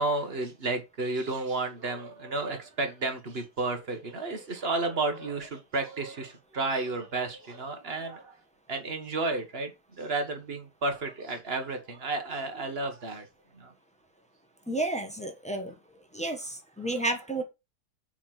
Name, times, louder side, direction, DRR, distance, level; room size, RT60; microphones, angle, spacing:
voice 1, 0.0-8.4 8.7-9.7 10.0-13.3 13.5-13.7, right 3 dB, 40° right, 1.6 m, -32 dB
voice 2, 14.7-15.7 16.1-17.4, right 2 dB, 5° left, 1.1 m, -31 dB
5.9 x 5.1 x 5.9 m
omnidirectional pair, 1.8 m